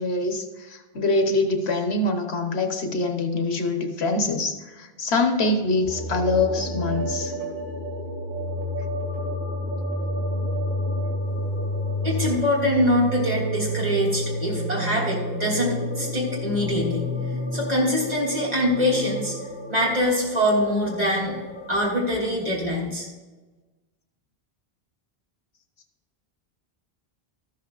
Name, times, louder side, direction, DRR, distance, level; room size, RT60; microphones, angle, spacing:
voice 1, 0.0-7.4, left 2 dB, 90° left, 5 dB, 1.4 m, -24 dB
sound 1, 5.8-21.8, equal, 70° left, 4.0 m, -30 dB
voice 2, 12.0-17.0 17.5-19.3 19.7-21.4 21.7-23.1, left 1 dB, 40° right, -4 dB, 3.3 m, -24 dB
13.5 x 12.5 x 2.5 m, 1.2 s
omnidirectional pair, 1.0 m